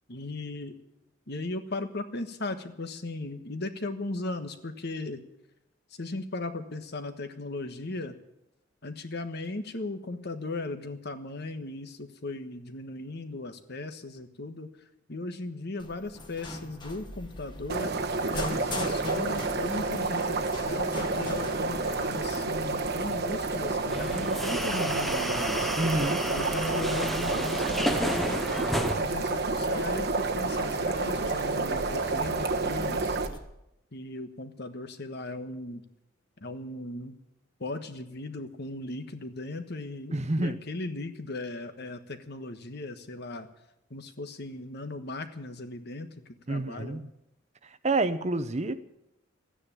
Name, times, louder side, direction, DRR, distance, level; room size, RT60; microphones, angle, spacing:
voice 1, 0.1-0.8 1.3-5.2 6.0-8.2 8.8-14.7 15.1-17.9 18.3-25.7 26.3-28.5 28.8-33.2 33.9-35.8 36.4-37.1 37.6-43.5 43.9-47.0, left 2 dB, 50° left, 8 dB, 1.3 m, -37 dB
sound 1, 15.8-33.4, left 1 dB, 20° left, 1.5 m, -42 dB
sound 2, 17.7-33.3, right 3 dB, 50° right, 1.1 m, -29 dB
sound 3, 23.9-29.0, equal, ahead, 0.7 m, -32 dB
voice 2, 25.8-26.2 40.1-40.6 46.5-47.1 47.8-48.7, right 2 dB, 30° right, 12 dB, 0.7 m, -28 dB
14.0 x 9.9 x 10.0 m, 0.85 s
head